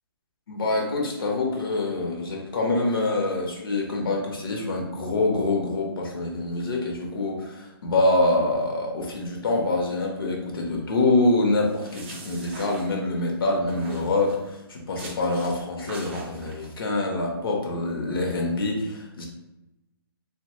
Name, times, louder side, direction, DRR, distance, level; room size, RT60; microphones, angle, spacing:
voice 1, 0.5-19.3, left 2 dB, 65° left, 0 dB, 0.7 m, -25 dB
sound 1, 11.6-13.3 13.7-14.5 15.0-15.6 15.9-16.7, right 3 dB, 25° right, 0.4 m, -42 dB
2.8 x 2.2 x 2.9 m, 0.96 s
hypercardioid pair, 155°, 13 cm